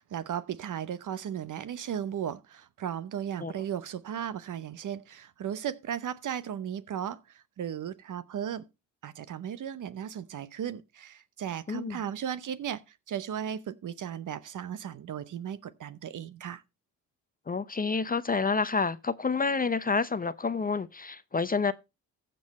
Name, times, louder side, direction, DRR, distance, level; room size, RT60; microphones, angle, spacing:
voice 1, 0.0-8.7 9.0-16.6, right 9 dB, 50° right, 0.9 m, -36 dB
voice 2, 11.7-12.0 17.5-21.7, left 4 dB, 20° left, 0.6 m, -28 dB
15.0 x 5.4 x 4.2 m
supercardioid pair, 65°, 40 cm